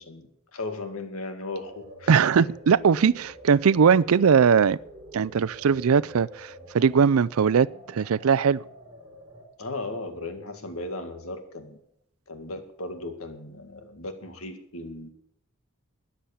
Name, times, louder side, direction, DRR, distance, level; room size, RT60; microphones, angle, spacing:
voice 1, 0.0-2.5 9.6-11.8 12.3-15.1, left 2 dB, 85° left, 2.1 m, -36 dB
sound 1, 1.6-9.5, right 1 dB, 20° right, 3.4 m, -47 dB
voice 2, 2.1-4.8 5.1-8.6, right 6 dB, 85° right, 0.4 m, -20 dB
13.0 x 10.0 x 7.2 m
head